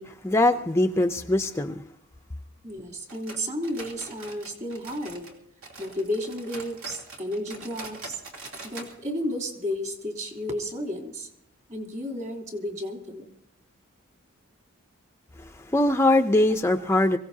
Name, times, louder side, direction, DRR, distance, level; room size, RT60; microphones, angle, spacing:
voice 1, 0.0-1.7 15.7-17.2, left 1 dB, 10° left, 0.5 m, -22 dB
voice 2, 2.6-5.3 5.8-8.2 8.6-11.3 11.7-13.3, equal, 35° right, 3.4 m, -32 dB
sound 1, 3.1-5.4 5.6-8.9 9.2-9.3 9.7-9.8 10.4-10.5, right 2 dB, 70° right, 3.1 m, -43 dB
24.5 x 16.5 x 2.8 m
head